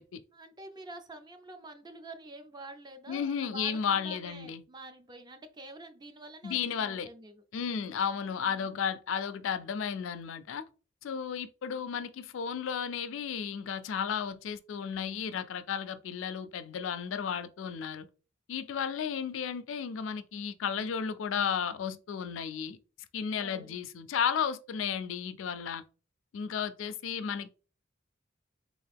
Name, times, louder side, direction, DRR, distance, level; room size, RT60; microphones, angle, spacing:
voice 1, 0.3-7.4 8.1-8.7 23.4-23.8, right 2 dB, 20° right, 0.5 m, -48 dB
voice 2, 3.1-4.6 6.4-7.1 7.5-10.6 11.0-18.1 18.5-22.8 23.1-25.8 26.3-27.5, left 7 dB, 75° left, 0.4 m, -33 dB
3.6 x 2.4 x 3.4 m
head